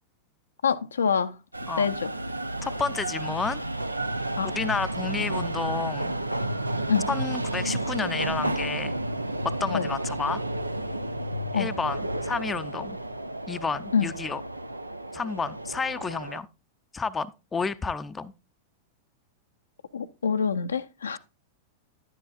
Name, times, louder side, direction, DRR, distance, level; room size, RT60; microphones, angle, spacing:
voice 1, 0.6-1.4 1.8-2.1 4.4-4.5 6.9-7.1 9.7-9.9 11.5-11.7 13.9-14.1 19.9-21.2, left 6 dB, 75° left, 0.5 m, -25 dB
sound 1, 1.5-16.4, right 1 dB, 90° right, 0.4 m, -31 dB
voice 2, 2.6-3.6 4.4-6.1 7.1-9.0 9.4-10.4 11.5-13.0 13.5-14.4 15.1-16.5 16.9-18.3, left 5 dB, 15° left, 0.5 m, -31 dB
11.0 x 10.0 x 2.4 m
figure-of-eight pair, 95°, 0 cm